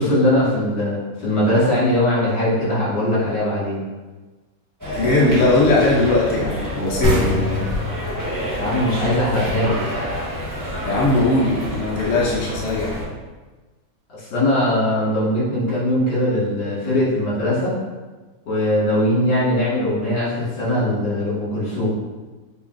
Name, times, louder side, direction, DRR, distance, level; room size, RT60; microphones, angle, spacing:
voice 1, 0.0-3.8 8.6-9.7 14.1-17.7 18.5-21.9, left 1 dB, 75° left, -9 dB, 2.4 m, -20 dB
sound 1, 4.8-13.0, equal, 10° right, 1.2 m, -28 dB
voice 2, 5.0-7.6 10.8-13.0, left 2 dB, 60° left, -4 dB, 0.9 m, -19 dB
sound 2, 7.0-10.4, left 2 dB, 85° right, 1.6 m, -25 dB
6.8 x 2.4 x 2.5 m, 1.2 s
omnidirectional pair, 1.8 m